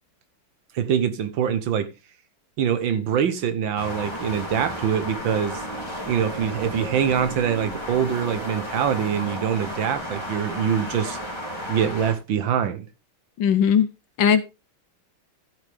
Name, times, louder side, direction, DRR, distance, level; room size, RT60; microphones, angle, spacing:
voice 1, 0.7-1.9 2.6-5.6 6.1-11.2 11.7-12.9, right 8 dB, 70° right, 1.7 m, -24 dB
sound 1, 3.8-12.1, equal, 10° left, 3.2 m, -33 dB
voice 2, 13.4-13.9 14.2-14.4, left 8 dB, 70° left, 1.4 m, -18 dB
15.0 x 6.5 x 3.6 m
omnidirectional pair, 2.3 m